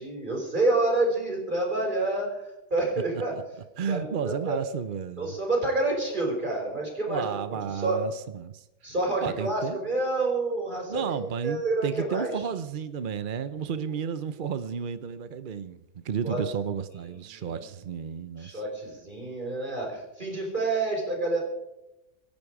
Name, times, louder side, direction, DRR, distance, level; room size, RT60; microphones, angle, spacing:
voice 1, 0.0-2.4 2.7-3.4 3.9-4.6 5.2-7.2 7.7-8.0 8.8-12.3 13.7-13.8 16.2-16.5 17.3-17.6 18.4-21.4, right 2 dB, 30° right, -1 dB, 5.3 m, -28 dB
voice 2, 3.8-5.3 7.1-8.9 9.2-9.8 10.9-15.8 16.0-18.6, right 7 dB, 55° right, 12 dB, 0.5 m, -32 dB
25.5 x 10.5 x 4.8 m, 0.93 s
omnidirectional pair, 1.8 m